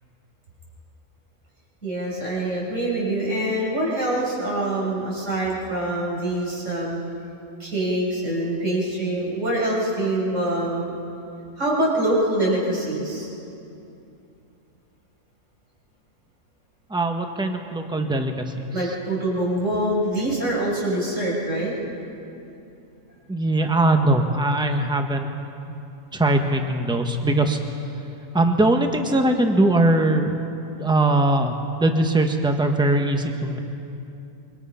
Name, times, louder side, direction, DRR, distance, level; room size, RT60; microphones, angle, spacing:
voice 1, 1.8-7.0 7.6-10.9 11.6-13.3 18.7-21.7, right 1 dB, 55° right, -4 dB, 6.6 m, -24 dB
voice 2, 16.9-18.5 23.3-25.3 25.7-25.8 26.1-27.6 28.3-30.3 30.8-33.6, right 2 dB, 5° right, 4 dB, 1.3 m, -21 dB
26.0 x 23.5 x 5.8 m, 2.7 s
omnidirectional pair, 1.5 m